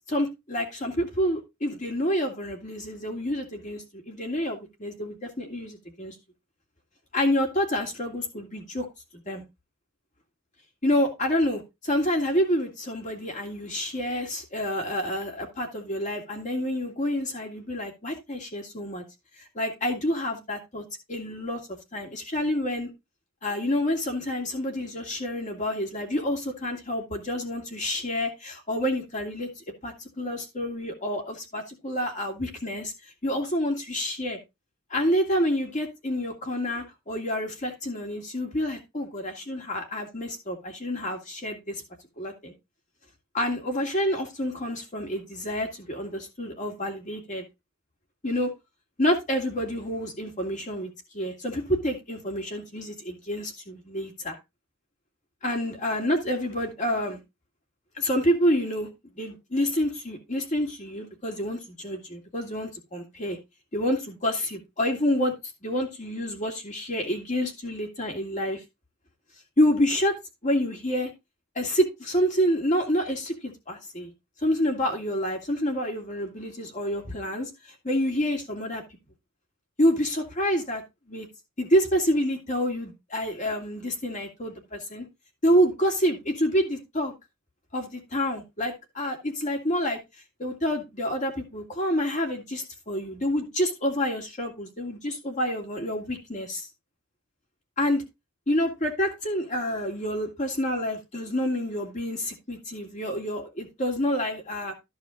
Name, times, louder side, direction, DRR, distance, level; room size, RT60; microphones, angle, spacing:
voice 1, 0.1-6.1 7.1-8.9 9.3-9.4 10.8-19.0 19.5-21.6 21.9-22.9 23.4-29.5 29.8-32.9 33.2-34.4 34.9-41.8 42.2-42.5 43.3-47.4 48.2-48.5 49.0-54.4 55.4-57.2 58.0-58.9 59.1-63.4 63.7-65.3 65.6-68.6 69.6-70.1 70.4-71.1 71.5-74.1 74.4-77.5 77.8-78.8 79.8-80.8 81.1-81.3 81.6-85.0 85.4-87.1 87.7-90.0 90.4-96.7 97.8-98.0 98.5-104.7, equal, 35° left, 2.9 m, -28 dB
13.5 x 4.9 x 3.9 m
head